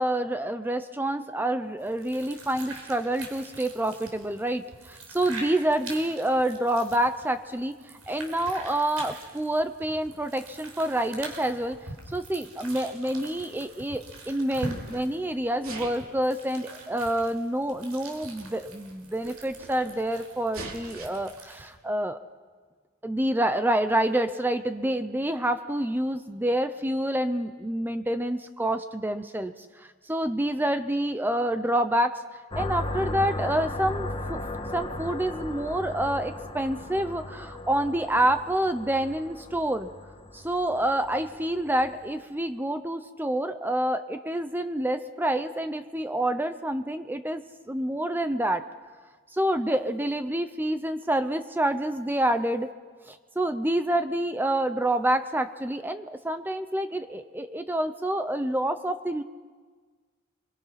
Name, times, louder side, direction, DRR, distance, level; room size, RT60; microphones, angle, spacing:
voice 1, 0.0-7.8 8.1-11.8 12.1-22.2 23.0-32.2 32.6-34.4 34.7-39.9 40.3-48.7 49.3-52.7 53.0-59.2, right 1 dB, 10° right, 9 dB, 0.7 m, -27 dB
sound 1, 1.8-21.7, right 2 dB, 80° right, 5.4 m, -44 dB
Sneeze, 13.3-14.1 14.5-15.0 15.5-16.1 17.1-17.2 18.1-18.2 18.4-18.5 18.8-20.0 20.5-21.1, right 3 dB, 65° right, 3.7 m, -43 dB
sound 2, 32.5-42.1, left 2 dB, 25° left, 1.5 m, -36 dB
30.0 x 23.5 x 5.8 m, 1.5 s
head